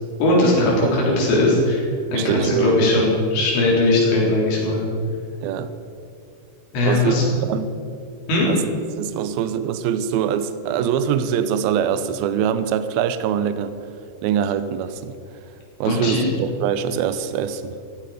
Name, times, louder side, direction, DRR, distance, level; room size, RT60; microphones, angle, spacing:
voice 1, 0.2-4.9 6.7-7.3 8.3-8.5 15.9-16.3, left 2 dB, 90° left, -4 dB, 6.2 m, -19 dB
voice 2, 2.1-2.9 5.4-5.7 6.9-7.2 7.5-7.7 8.5-13.7 14.2-15.2 15.8-17.8, right 8 dB, 80° right, 12 dB, 2.3 m, -23 dB
15.5 x 15.0 x 5.0 m, 2.5 s
omnidirectional pair, 5.0 m